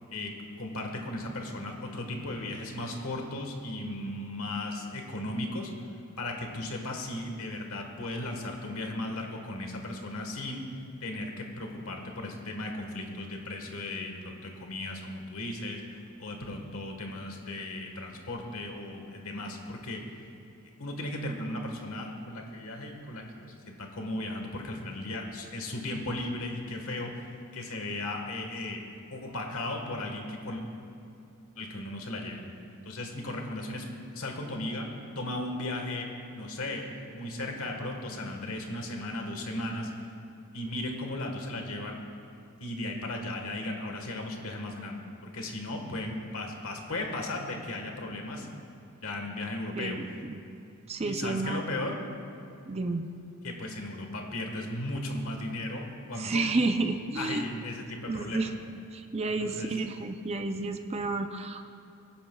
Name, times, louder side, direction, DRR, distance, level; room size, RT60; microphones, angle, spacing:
voice 1, 0.6-5.7 6.2-10.6 11.0-20.0 20.8-28.8 29.1-30.6 31.6-32.4 32.8-33.9 34.1-34.9 35.1-36.1 36.3-39.9 40.5-42.0 42.6-48.5 49.0-50.0 51.0-52.0 53.4-56.4 57.2-58.5 59.4-59.7, left 1 dB, 65° left, 2 dB, 1.4 m, -36 dB
voice 2, 49.8-50.4 50.9-51.7 52.7-53.1 56.2-57.5 58.1-58.5 58.9-61.6, right 3 dB, 30° right, 7 dB, 0.4 m, -31 dB
22.0 x 10.0 x 2.3 m, 2.6 s
head